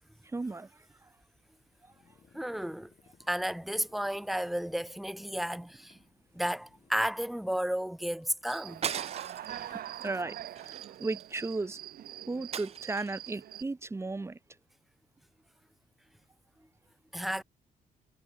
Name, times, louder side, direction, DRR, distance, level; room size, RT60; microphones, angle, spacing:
voice 1, 0.3-0.7 1.0-1.1 9.7-11.8 12.3-14.4, right 3 dB, 15° right, 1.8 m, -35 dB
sound 1, 1.3-10.6, left 7 dB, 45° left, 7.9 m, -64 dB
voice 2, 2.3-2.9 3.3-6.0 6.3-8.8 17.1-17.4, equal, ahead, 0.5 m, -32 dB
Human voice / Cricket, 8.5-13.6, right 12 dB, 75° right, 2.4 m, -43 dB
sound 2, 8.8-9.6 10.0-10.2 10.6-11.5 12.5-13.3, right 7 dB, 45° right, 1.3 m, -38 dB
cardioid pair, 115°, 15 cm